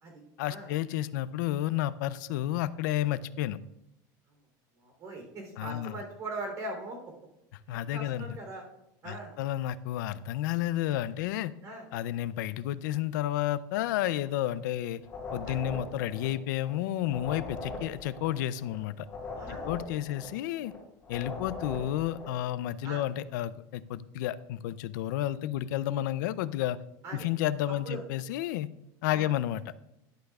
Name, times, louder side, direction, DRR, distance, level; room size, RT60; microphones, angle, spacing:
voice 1, 0.4-3.6 5.6-6.0 7.7-8.4 9.1-11.5 11.9-15.0 15.3-19.1 19.5-20.7 21.1-26.8 27.1-28.7 29.0-29.7, left 13 dB, 80° left, 16 dB, 0.5 m, -31 dB
voice 2, 4.8-7.1 7.7-8.6 9.0-9.3 11.6-11.8 15.5-15.6 19.4-19.7 22.8-23.0 27.0-27.3 27.7-28.0 29.1-29.3, right 2 dB, 35° right, 2 dB, 3.3 m, -41 dB
sound 1, 15.0-16.8 17.0-20.8 21.0-22.4, left 3 dB, 20° left, 3.4 m, -41 dB
11.5 x 11.0 x 2.4 m, 0.87 s
cardioid pair, 175°, 10 cm